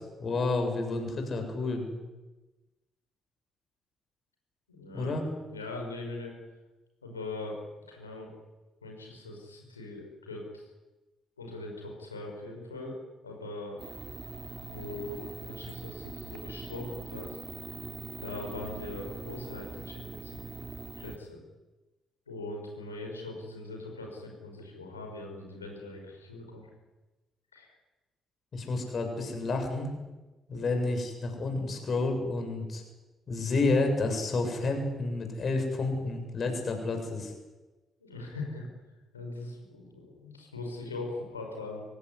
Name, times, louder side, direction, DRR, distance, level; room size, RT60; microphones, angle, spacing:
voice 1, 0.0-2.0 4.9-5.2 28.5-29.9 30.5-32.8 33.3-37.3, left 3 dB, 45° left, 4 dB, 7.6 m, -30 dB
voice 2, 4.7-5.1 5.5-6.3 7.0-7.6 7.9-8.3 8.8-10.6 11.4-13.0 13.2-13.8 14.6-17.4 18.2-20.4 21.0-21.4 22.3-26.7 27.5-27.7 30.5-30.8 38.0-38.6 39.1-41.8, left 2 dB, 85° left, 1 dB, 5.6 m, -41 dB
sound 1, 13.8-21.2, right 4 dB, 30° right, 2.6 m, -42 dB
24.5 x 18.0 x 9.9 m, 1.1 s
figure-of-eight pair, 40°, 0 cm